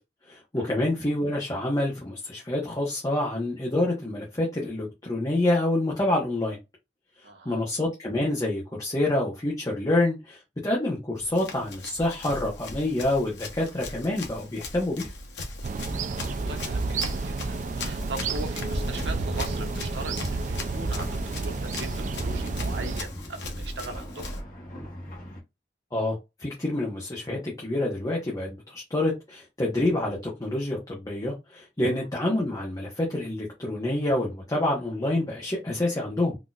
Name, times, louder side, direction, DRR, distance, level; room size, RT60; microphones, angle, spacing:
voice 1, 0.3-6.6 7.4-15.1 25.9-36.4, left 1 dB, 20° left, 0.9 m, -27 dB
voice 2, 7.2-7.6 16.4-21.9 22.2-24.4, right 3 dB, 90° right, 0.9 m, -40 dB
Run, 11.2-24.4, left 2 dB, 90° left, 1.0 m, -38 dB
sound 1, 15.6-23.0, right 4 dB, 45° right, 0.3 m, -31 dB
sound 2, 18.8-25.4, equal, 50° left, 1.1 m, -41 dB
4.0 x 2.8 x 2.4 m
head